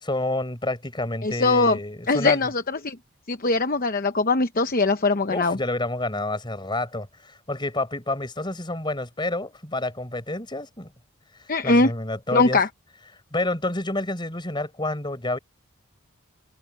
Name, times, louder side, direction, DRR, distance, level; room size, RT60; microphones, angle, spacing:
voice 1, 0.0-2.5 5.3-10.9 11.6-12.6 13.3-15.4, left 2 dB, 20° left, 4.4 m, -29 dB
voice 2, 1.2-1.8 2.1-3.0 3.3-5.6 11.5-11.9 12.3-12.7, left 3 dB, 40° left, 0.9 m, -21 dB
head